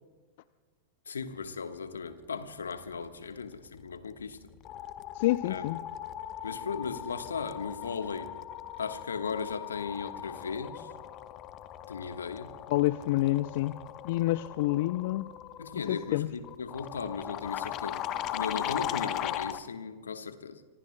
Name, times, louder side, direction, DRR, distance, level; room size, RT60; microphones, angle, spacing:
voice 1, 1.1-4.4 5.4-5.6 6.4-8.3 8.8-10.9 11.9-12.5 15.6-18.0 18.3-20.6, left 5 dB, 80° left, 1.2 m, -37 dB
sound 1, 3.8-4.1 4.4-19.6, left 12 dB, 40° left, 0.9 m, -39 dB
voice 2, 5.1-5.8 12.7-15.3 15.7-16.3, left 16 dB, 60° left, 0.4 m, -28 dB
26.0 x 24.5 x 2.2 m
figure-of-eight pair, 95°, 0 cm